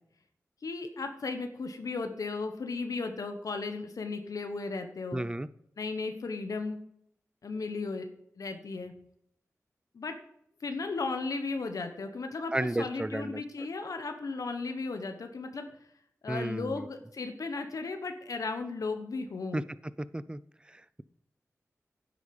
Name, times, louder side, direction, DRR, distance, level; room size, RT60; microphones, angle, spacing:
voice 1, 0.6-5.3 5.8-6.8 7.4-8.1 8.3-8.9 9.9-10.1 10.6-15.7 16.2-19.6, left 3 dB, 75° left, 6 dB, 1.1 m, -35 dB
voice 2, 5.1-5.5 12.5-13.4 16.3-16.9 19.5-20.4, right 1 dB, 15° right, 17 dB, 0.6 m, -33 dB
10.0 x 8.1 x 5.3 m, 0.72 s
cardioid pair, 45°, 6 cm